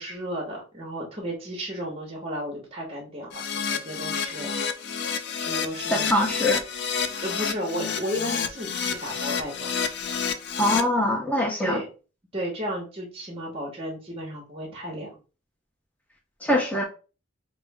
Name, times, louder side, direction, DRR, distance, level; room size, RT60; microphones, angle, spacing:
voice 1, 0.0-4.5 5.4-6.4 7.2-9.7 11.6-11.9 12.3-15.1, equal, 30° right, -2 dB, 1.0 m, -33 dB
Keyboard (musical), 3.3-10.8, left 6 dB, 60° left, 0.5 m, -29 dB
voice 2, 5.9-6.6 10.6-11.8 16.4-16.8, left 1 dB, 10° left, 0 dB, 0.7 m, -23 dB
5.1 x 2.0 x 3.4 m, 0.34 s
head